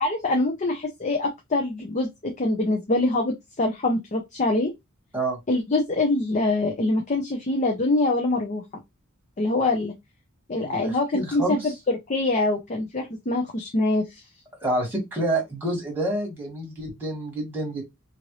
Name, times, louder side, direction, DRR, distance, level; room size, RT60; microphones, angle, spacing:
voice 1, 0.0-4.7 5.5-8.6 9.4-9.9 10.5-14.2, left 2 dB, 35° left, 0.6 m, -24 dB
voice 2, 10.5-11.7 14.6-17.8, right 1 dB, 10° right, 1.5 m, -28 dB
2.9 x 2.5 x 3.1 m
head